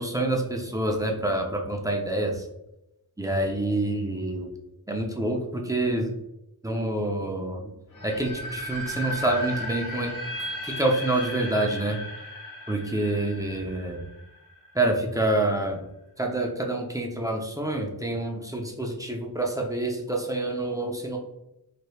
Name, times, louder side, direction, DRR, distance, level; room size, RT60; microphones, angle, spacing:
voice 1, 0.0-2.5 3.2-4.5 4.9-6.1 6.6-7.7 8.0-10.1 10.6-12.0 12.7-14.0 14.7-15.8 16.2-21.2, right 2 dB, 10° right, 1 dB, 0.5 m, -27 dB
sound 1, 7.9-14.8, left 1 dB, 50° left, 1.1 m, -35 dB
3.2 x 3.0 x 2.3 m, 0.88 s
wide cardioid pair, 65°, 39 cm